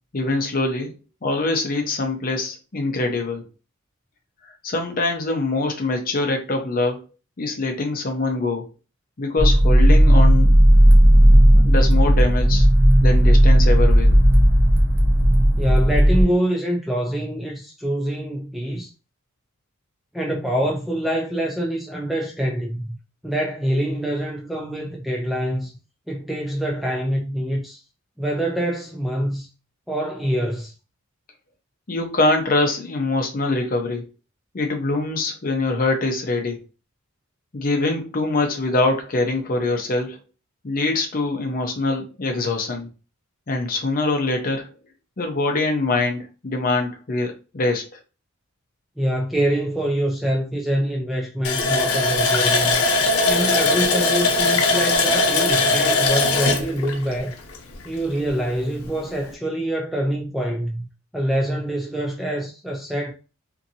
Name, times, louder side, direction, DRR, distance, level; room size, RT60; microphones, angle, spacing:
voice 1, 0.1-0.9 1.2-3.4 4.6-7.0 7.4-8.7 9.2-10.7 11.5-12.7 13.0-14.2 31.9-34.1 34.5-36.6 37.5-40.2 40.6-42.9 43.5-44.7 45.2-47.8, left 2 dB, 40° left, 0.6 m, -23 dB
sound 1, 9.4-16.2, equal, 45° right, 0.7 m, -13 dB
voice 2, 15.6-18.9 20.1-23.0 23.2-25.7 26.1-27.8 28.2-29.5 29.9-30.7 49.0-52.8 53.2-57.4 57.8-60.9 61.1-63.1, right 1 dB, ahead, 0.3 m, -25 dB
Water tap faucet, 51.4-57.9 58.3-58.4 58.8-59.0, left 3 dB, 80° left, 0.6 m, -20 dB
2.7 x 2.5 x 2.7 m
head